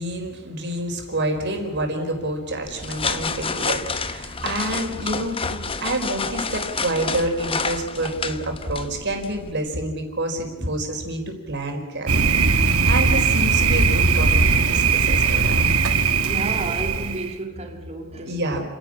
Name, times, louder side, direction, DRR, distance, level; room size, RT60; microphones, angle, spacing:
voice 1, 0.0-11.2 11.5-12.4 12.9-15.6 18.3-18.7, right 1 dB, 55° right, 4.6 m, -27 dB
sound 1, 2.6-9.5, left 4 dB, 25° left, 1.0 m, -29 dB
Thunder, 12.1-17.3, right 5 dB, 85° right, 1.2 m, -19 dB
voice 2, 16.2-18.6, right 2 dB, 30° right, 2.9 m, -31 dB
29.5 x 11.5 x 9.9 m
head